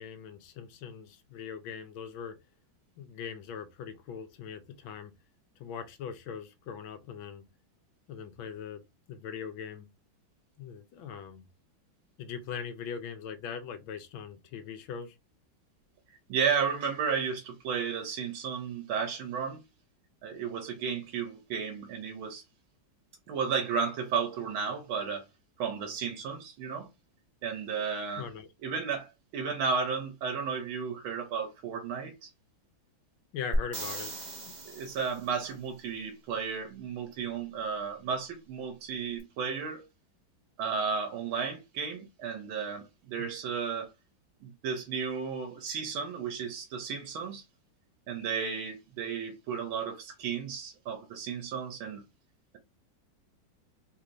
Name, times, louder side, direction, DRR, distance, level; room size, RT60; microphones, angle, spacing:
voice 1, 0.0-2.4 3.0-5.1 5.6-7.4 8.1-8.8 9.1-9.9 10.6-11.4 12.2-15.2 28.2-28.5 33.3-34.6 43.2-43.3, left 7 dB, 80° left, 1.5 m, -41 dB
voice 2, 16.3-19.6 20.2-22.4 23.3-25.2 25.6-26.9 27.4-28.3 28.6-32.3 34.7-39.9 40.6-43.9 44.4-47.4 48.1-52.0, right 6 dB, 90° right, 1.6 m, -33 dB
sound 1, 33.5-35.4 39.2-39.3, right 1 dB, 35° right, 0.7 m, -35 dB
3.8 x 2.5 x 3.0 m
omnidirectional pair, 2.2 m